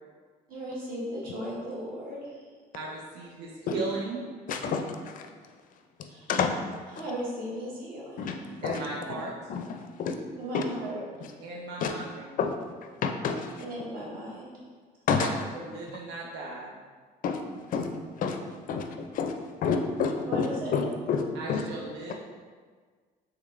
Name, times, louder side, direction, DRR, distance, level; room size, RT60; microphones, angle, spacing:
voice 1, 0.5-2.4 6.1-6.2 6.9-8.4 10.4-11.3 13.6-14.6 20.3-20.8, equal, 60° right, -6 dB, 1.4 m, -36 dB
voice 2, 2.7-4.2 8.6-9.4 11.4-12.3 15.2-16.7 21.3-22.1, right 3 dB, 85° right, -2 dB, 0.5 m, -37 dB
voice 3, 4.5-5.3 6.0-6.8 8.2-8.4 8.6-8.8 9.5-10.2 10.5-10.6 11.8-11.9 12.4-12.6 13.0-13.6 15.1-15.3 17.2-17.4 17.7-17.9 18.2-18.4 18.7-19.4 19.6-21.2 21.5-21.6, left 5 dB, 55° left, 5 dB, 0.5 m, -29 dB
3.8 x 3.2 x 3.2 m, 1.5 s
cardioid pair, 110°, 17 cm